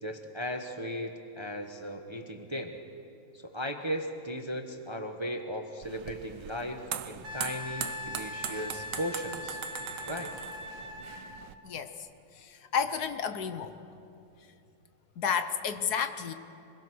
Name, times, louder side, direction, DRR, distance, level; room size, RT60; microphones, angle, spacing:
voice 1, 0.0-2.8 3.3-9.6 10.1-10.4, equal, 20° right, 4 dB, 0.9 m, -37 dB
sound 1, 5.8-11.5, right 9 dB, 90° right, 1.5 m, -40 dB
Wind instrument woodwind instrument, 7.2-11.5 14.2-14.3, left 3 dB, 65° right, 2.1 m, -41 dB
voice 2, 11.6-12.1 12.3-13.7 15.2-16.3, left 7 dB, 65° left, 9 dB, 1.4 m, -31 dB
26.0 x 21.5 x 6.3 m, 2.6 s
omnidirectional pair, 1.9 m